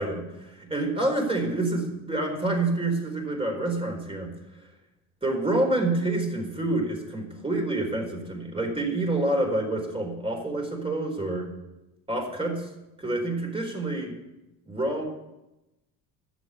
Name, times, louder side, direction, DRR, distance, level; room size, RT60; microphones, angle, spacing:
voice 1, 0.0-4.3 5.2-11.5 12.1-12.7 13.0-14.1 14.7-15.0, right 2 dB, 15° right, 2 dB, 4.3 m, -27 dB
11.0 x 8.0 x 8.3 m, 0.95 s
hypercardioid pair, 75°, 43 cm